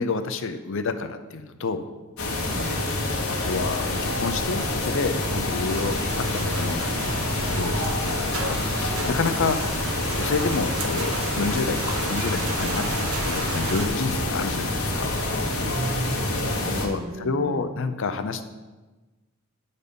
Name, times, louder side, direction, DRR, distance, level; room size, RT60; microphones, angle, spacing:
voice 1, 0.0-1.8 3.3-7.2 7.5-9.6 10.2-15.1 16.8-18.4, left 4 dB, 65° left, 9 dB, 0.6 m, -29 dB
sound 1, 2.2-16.9, left 2 dB, 80° left, 1.3 m, -27 dB
voice 2, 2.5-2.8 9.4-9.6 15.6-17.7, right 2 dB, 40° right, 3 dB, 0.5 m, -35 dB
sound 2, 5.7-13.9, right 3 dB, 85° right, 1.0 m, -34 dB
9.7 x 4.1 x 5.2 m, 1.2 s
head